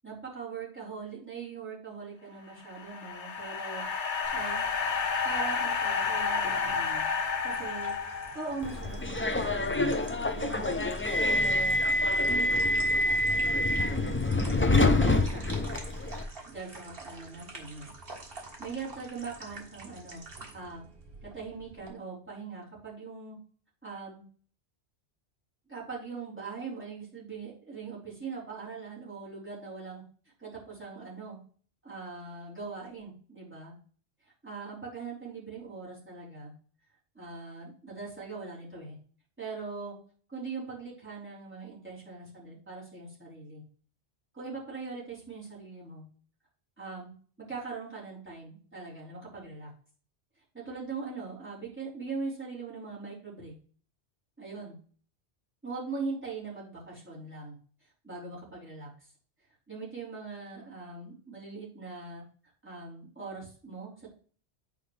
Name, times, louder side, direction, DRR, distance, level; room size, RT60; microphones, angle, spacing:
voice 1, 0.0-3.8 4.3-4.6 5.2-7.1 7.4-7.9 8.3-10.8 11.2-11.8 12.3-14.2 14.7-15.6 16.5-17.9 18.4-20.2 20.5-20.8 21.2-23.4 23.8-24.2 25.7-30.0 30.4-31.4 31.8-33.7 34.4-36.5 37.1-39.0 39.4-39.9 40.3-43.6 44.3-46.0 46.8-47.1 47.4-49.7 50.5-53.5 54.4-54.8 55.6-57.6 58.0-58.9 59.7-62.2 62.6-64.1, right 4 dB, 10° right, -9 dB, 4.3 m, -41 dB
sound 1, 2.5-8.9, left 5 dB, 85° left, 1.2 m, -31 dB
sound 2, 4.2-21.9, right 3 dB, 55° right, 1.8 m, -48 dB
Subway metro underground, 8.6-16.2, left 1 dB, 20° left, 0.3 m, -26 dB
9.7 x 5.1 x 3.3 m, 0.43 s
omnidirectional pair, 1.2 m